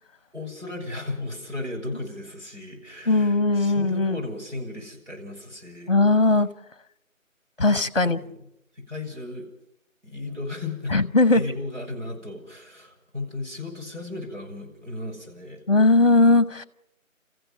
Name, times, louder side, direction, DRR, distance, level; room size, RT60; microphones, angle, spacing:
voice 1, 0.3-5.9 7.8-8.3 8.9-9.5 10.0-15.6, left 2 dB, 60° right, 1 dB, 6.8 m, -35 dB
voice 2, 3.1-4.2 5.9-6.5 7.6-8.2 10.9-11.4 15.7-16.6, left 3 dB, 45° left, 15 dB, 0.9 m, -19 dB
29.0 x 15.0 x 6.4 m, 0.80 s
figure-of-eight pair, 175°, 41 cm